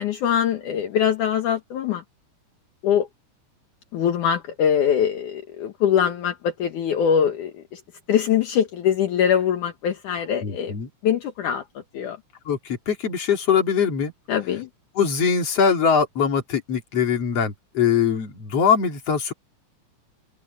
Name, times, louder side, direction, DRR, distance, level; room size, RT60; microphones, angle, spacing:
voice 1, 0.0-2.0 2.8-3.1 3.9-7.8 8.1-10.7 11.0-12.2 14.3-14.7, left 8 dB, 70° left, 2.9 m, -23 dB
voice 2, 10.4-10.9 12.5-14.1 15.0-19.3, left 7 dB, 50° left, 3.8 m, -22 dB
omnidirectional pair, 3.9 m